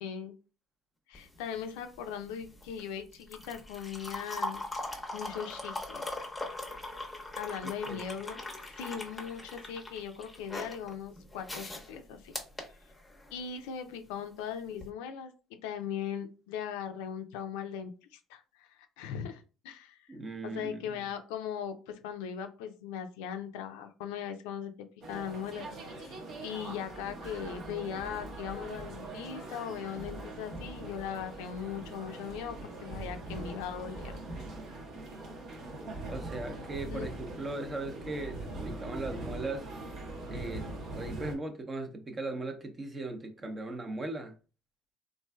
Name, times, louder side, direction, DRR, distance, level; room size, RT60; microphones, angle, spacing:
voice 1, 0.0-0.3 1.1-4.6 5.1-6.0 7.4-12.3 13.3-15.3 15.6-20.1 20.4-24.7 25.1-25.7 25.9-26.2 26.4-32.6 32.8-34.1 36.9-37.1, left 8 dB, 85° left, 0.4 m, -39 dB
sound 1, 1.1-13.5 14.7-14.9, left 2 dB, 15° left, 0.7 m, -41 dB
voice 2, 20.1-21.1 36.0-39.6 40.3-40.7 40.9-44.3, right 2 dB, 30° right, 0.7 m, -38 dB
sound 2, 25.0-41.3, right 2 dB, 60° right, 0.9 m, -42 dB
3.1 x 2.6 x 2.2 m
supercardioid pair, 80°, 0 cm